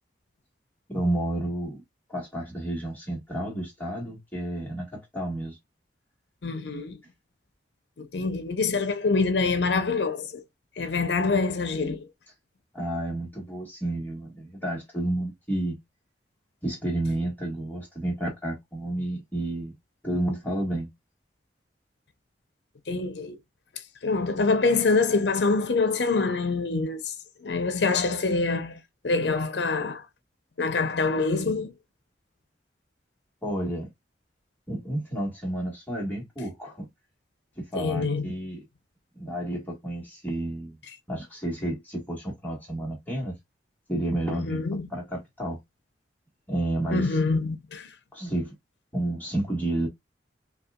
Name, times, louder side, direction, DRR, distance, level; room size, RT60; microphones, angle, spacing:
voice 1, 0.9-1.8 2.1-5.6 12.7-15.8 16.6-19.7 20.0-20.9 33.4-33.9 34.7-36.9 37.6-38.6 39.1-40.8 41.1-43.3 43.9-44.6 44.9-45.6 46.5-47.2 48.1-48.5 48.9-49.9, right 1 dB, 10° left, 1.4 m, -31 dB
voice 2, 6.4-7.0 8.0-10.4 10.8-12.1 22.9-23.4 24.0-27.1 27.4-30.0 30.6-31.7 37.8-38.3 44.3-44.9 46.9-47.9, left 4 dB, 70° left, 0.6 m, -25 dB
5.5 x 2.3 x 2.3 m
head